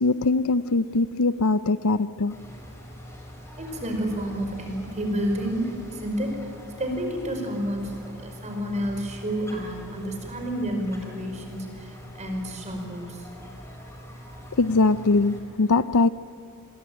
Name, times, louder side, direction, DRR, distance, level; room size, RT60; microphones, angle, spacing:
voice 1, 0.0-2.4 14.6-16.1, left 3 dB, 75° left, 15 dB, 0.6 m, -22 dB
sound 1, 2.3-15.4, equal, 10° left, 4.9 m, -43 dB
voice 2, 3.6-13.2, equal, 30° right, 3 dB, 5.0 m, -30 dB
29.0 x 21.5 x 9.1 m, 2.4 s
head